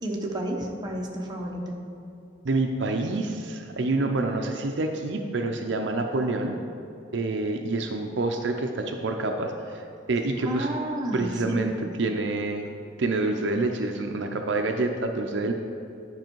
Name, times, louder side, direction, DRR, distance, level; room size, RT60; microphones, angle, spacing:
voice 1, 0.0-1.8 10.4-11.8, right 1 dB, 20° right, -1 dB, 0.9 m, -31 dB
voice 2, 2.4-6.6 7.1-10.7 11.1-11.7 12.0-12.6 13.0-15.5, right 2 dB, 65° right, 4 dB, 0.5 m, -27 dB
10.5 x 5.4 x 4.5 m, 2.6 s
head